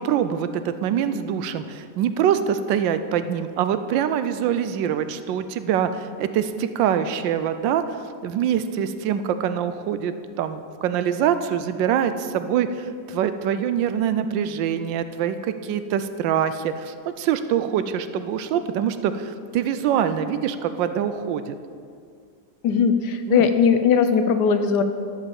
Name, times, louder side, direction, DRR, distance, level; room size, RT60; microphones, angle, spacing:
voice 1, 0.0-21.6 23.3-23.5, right 9 dB, 85° right, 11 dB, 1.3 m, -24 dB
voice 2, 22.6-24.8, left 6 dB, 70° left, 9 dB, 1.1 m, -19 dB
12.0 x 5.7 x 7.0 m, 2.2 s
omnidirectional pair, 2.0 m